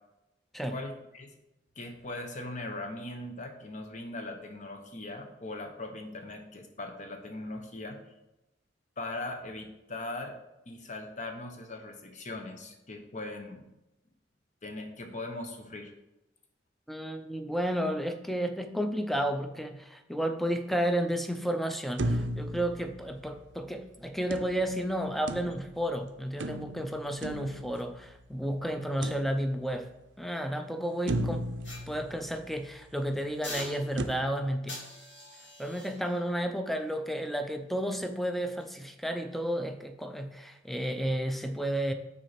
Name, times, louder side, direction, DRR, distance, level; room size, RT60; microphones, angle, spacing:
voice 1, 0.7-1.3 1.8-8.0 9.0-10.4 10.7-13.7 14.6-15.9, left 2 dB, 40° left, 5 dB, 1.0 m, -40 dB
voice 2, 16.9-29.9 30.2-31.5 31.9-34.9 35.6-41.9, equal, ahead, 6 dB, 0.5 m, -32 dB
sound 1, 22.0-23.6 24.3-25.9 26.4-28.3 29.0-29.9 30.4-30.5 31.1-32.8 34.0-34.1, right 1 dB, 75° right, 0.6 m, -35 dB
sound 2, 31.6-32.6 33.4-34.2 34.7-37.9 38.4-38.6, left 1 dB, 75° left, 2.8 m, -46 dB
6.1 x 4.2 x 5.8 m, 0.93 s
head